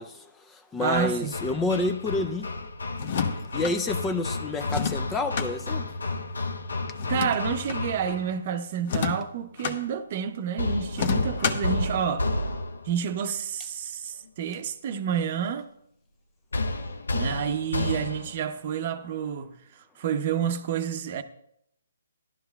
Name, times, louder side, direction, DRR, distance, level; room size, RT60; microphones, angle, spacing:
voice 1, 0.0-2.5 3.5-5.9, left 2 dB, 10° left, 0.4 m, -29 dB
voice 2, 0.8-1.3 7.1-12.3 12.8-15.7 17.1-21.2, right 8 dB, 40° right, 0.7 m, -29 dB
Hammer, 0.9-8.4 10.6-13.0 16.5-18.4, left 2 dB, 90° left, 0.7 m, -31 dB
sound 1, 2.9-3.8 4.7-5.5 7.0-7.8 8.8-9.8 10.9-11.8, left 6 dB, 45° left, 0.9 m, -29 dB
15.0 x 11.5 x 2.3 m
hypercardioid pair, 155°, 0 cm